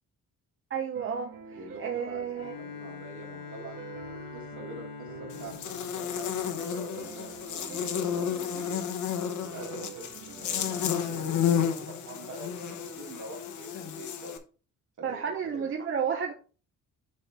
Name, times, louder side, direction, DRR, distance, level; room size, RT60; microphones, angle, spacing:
voice 1, 0.7-1.3 1.8-2.6 15.0-16.3, right 7 dB, 40° right, 4 dB, 0.8 m, -31 dB
sound 1, 0.9-12.9, right 7 dB, 90° right, 1.7 m, -47 dB
voice 2, 1.5-8.9 9.4-14.4 15.0-15.7, right 2 dB, 65° right, -1 dB, 2.7 m, -46 dB
Bowed string instrument, 2.4-7.1, left 6 dB, 80° left, 2.0 m, -44 dB
Buzz, 5.3-14.4, left 8 dB, 60° left, 1.1 m, -32 dB
7.7 x 4.4 x 3.6 m, 0.37 s
cardioid pair, 160°, 33 cm